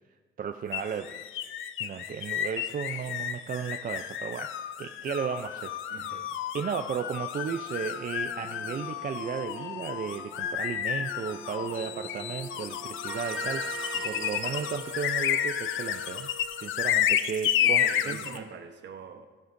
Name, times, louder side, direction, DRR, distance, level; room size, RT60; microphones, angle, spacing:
voice 1, 0.4-1.1 1.8-4.5 4.8-5.7 6.5-16.3 16.6-18.2, right 7 dB, 45° right, 6 dB, 0.5 m, -34 dB
sound 1, 0.7-18.4, left 10 dB, 80° left, 0.6 m, -31 dB
voice 2, 5.9-6.4 13.8-14.1 17.6-19.3, right 6 dB, 65° right, 6 dB, 1.1 m, -44 dB
Bowed string instrument, 7.4-14.9, equal, 50° left, 3.6 m, -47 dB
sound 2, 13.1-16.7, right 3 dB, 5° right, 4.1 m, -39 dB
15.5 x 11.0 x 2.6 m, 1.4 s
cardioid pair, 90°, 20 cm